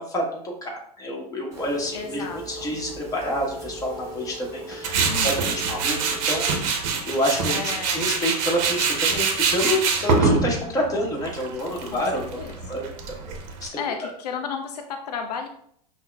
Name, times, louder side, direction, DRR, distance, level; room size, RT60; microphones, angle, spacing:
voice 1, 0.0-5.0 5.2-6.0 6.2-12.8 13.6-13.7 14.0-14.1, equal, 15° left, -1 dB, 1.1 m, -28 dB
Telephone, 1.5-6.7, right 1 dB, 15° right, 1.3 m, -39 dB
voice 2, 1.9-2.8 5.1-5.6 7.5-8.1 11.9-12.8 13.8-15.5, left 6 dB, 70° left, 5 dB, 0.4 m, -34 dB
Tools, 4.8-13.7, right 4 dB, 55° right, 0.7 m, -25 dB
5.5 x 2.1 x 2.3 m, 0.65 s
hypercardioid pair, 95°, 21 cm